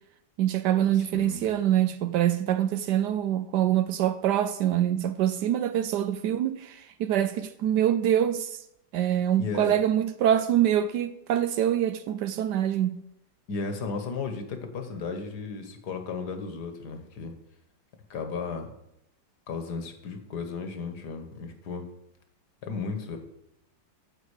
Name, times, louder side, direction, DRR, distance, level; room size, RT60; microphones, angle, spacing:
voice 1, 0.4-8.6 8.9-13.0, right 11 dB, 75° right, 1.1 m, -25 dB
voice 2, 0.9-1.4 9.4-9.8 13.5-17.3 18.1-18.7 19.5-21.9 22.6-23.2, left 4 dB, 65° left, 1.7 m, -34 dB
9.8 x 7.4 x 4.9 m
omnidirectional pair, 2.0 m